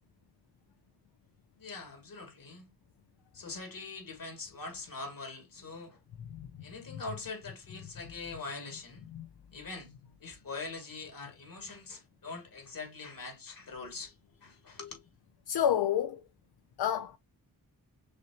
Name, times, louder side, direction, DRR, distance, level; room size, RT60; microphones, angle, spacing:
voice 1, 1.6-2.7 3.3-6.0 6.6-9.1 9.5-9.9 10.2-14.1 14.4-15.0, left 3 dB, 65° left, 2.3 m, -43 dB
voice 2, 15.5-16.2 16.8-17.2, left 10 dB, 90° left, 0.5 m, -29 dB
6.1 x 2.9 x 2.8 m
cardioid pair, 70°, 37 cm